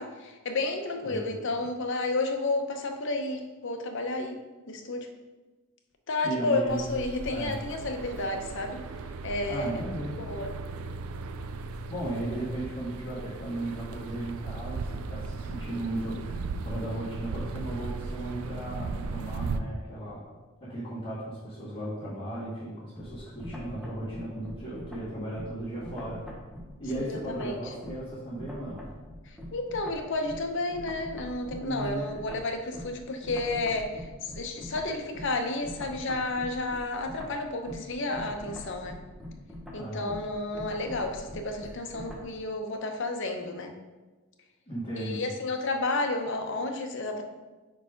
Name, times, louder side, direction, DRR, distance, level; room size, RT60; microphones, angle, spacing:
voice 1, 0.0-4.4 4.7-5.1 6.1-8.8 9.2-9.7 10.2-10.5 26.9-27.6 29.2-39.0 39.7-43.8 45.0-47.2, left 2 dB, 60° left, 4 dB, 0.7 m, -31 dB
voice 2, 6.2-6.8 7.3-7.6 9.5-10.2 11.9-20.2 20.6-26.2 26.8-28.9 31.6-32.1 39.8-40.1 44.7-45.2, right 1 dB, 20° left, -14 dB, 1.9 m, -36 dB
sound 1, 6.7-19.6, right 4 dB, 80° right, 0.4 m, -37 dB
sound 2, 23.0-28.1 28.4-42.4, left 1 dB, 5° right, 0.8 m, -43 dB
4.8 x 4.6 x 5.1 m, 1.2 s
head